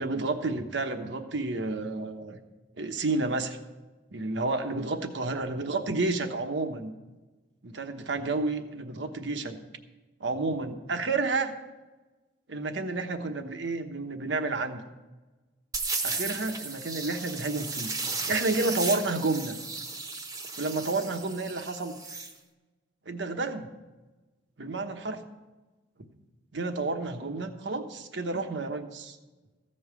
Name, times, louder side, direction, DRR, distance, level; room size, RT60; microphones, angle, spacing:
voice 1, 0.0-2.4 2.8-3.6 4.1-6.9 7.6-9.6 10.2-11.5 12.5-14.8 16.0-17.9 18.2-19.5 20.6-22.0 23.1-23.7 24.6-25.2 26.5-29.2, right 3 dB, 80° right, 7 dB, 1.1 m, -30 dB
sound 1, 15.7-22.3, right 3 dB, 20° right, 0.9 m, -35 dB
15.0 x 5.5 x 8.2 m, 1.2 s
head